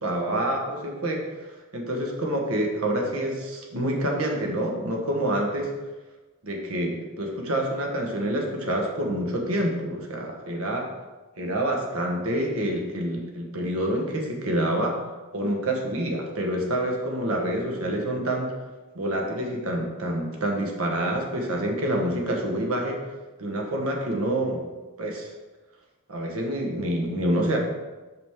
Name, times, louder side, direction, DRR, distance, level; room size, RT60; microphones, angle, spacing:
voice 1, 0.0-5.7 6.4-10.9 11.4-15.0 15.3-18.5 18.9-23.0 23.4-24.6 25.0-25.3 26.1-27.6, right 1 dB, 85° right, 1 dB, 1.2 m, -27 dB
6.1 x 5.9 x 3.6 m, 1.2 s
head